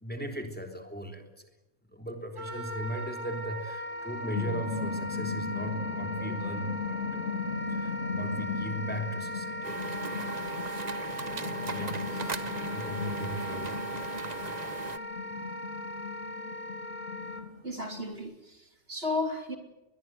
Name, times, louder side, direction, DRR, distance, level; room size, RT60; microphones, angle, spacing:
voice 1, 0.0-1.5 1.9-7.3 7.7-10.2 11.6-13.9, equal, 5° left, 3.5 m, -38 dB
Wind instrument woodwind instrument, 2.4-17.4, left 1 dB, 90° right, 3.2 m, -39 dB
sound 1, 3.9-18.1, left 4 dB, 65° left, 2.7 m, -38 dB
sound 2, 9.6-15.0, right 4 dB, 35° right, 1.1 m, -37 dB
voice 2, 17.6-19.6, left 2 dB, 50° right, 3.2 m, -34 dB
22.0 x 22.0 x 9.3 m
omnidirectional pair, 1.3 m